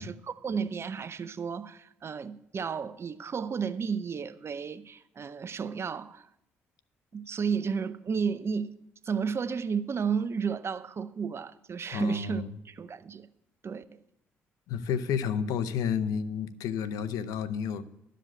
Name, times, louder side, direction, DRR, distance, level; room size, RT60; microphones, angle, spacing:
voice 1, 0.0-6.3 7.1-8.7 9.0-13.3 13.6-14.0, right 6 dB, 45° right, 0.7 m, -32 dB
voice 2, 11.9-12.5 14.7-17.9, left 7 dB, 75° left, 0.6 m, -31 dB
12.0 x 5.1 x 7.5 m
hypercardioid pair, 50°, 6 cm